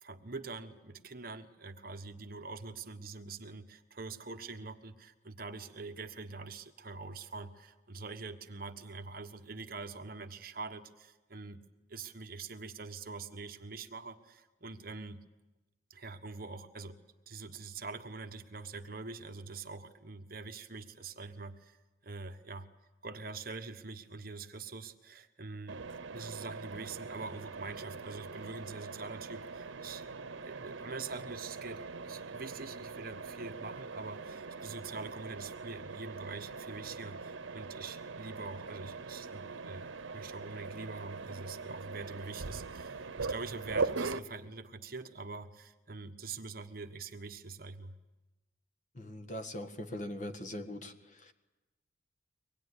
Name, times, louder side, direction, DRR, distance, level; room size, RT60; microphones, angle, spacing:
voice 1, 0.0-11.6 11.9-15.2 15.9-21.8 22.0-22.7 23.0-25.8 26.1-30.1 30.4-48.0, right 4 dB, 50° right, 7 dB, 1.3 m, -44 dB
Mechanisms, 25.7-44.2, right 4 dB, 90° right, 0.9 m, -41 dB
voice 2, 48.9-51.3, left 1 dB, 40° left, 7 dB, 1.7 m, -41 dB
24.5 x 19.5 x 9.9 m, 1.1 s
head